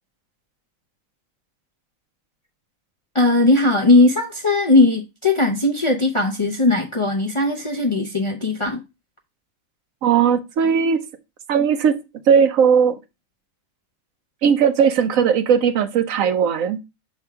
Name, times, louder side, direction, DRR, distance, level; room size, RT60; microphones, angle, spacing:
voice 1, 3.1-8.8, left 2 dB, 35° left, 0.5 m, -18 dB
voice 2, 10.0-11.0 11.5-12.0 12.3-12.9 14.4-16.8, right 7 dB, 75° right, 1.1 m, -17 dB
6.7 x 3.5 x 4.6 m
omnidirectional pair, 1.4 m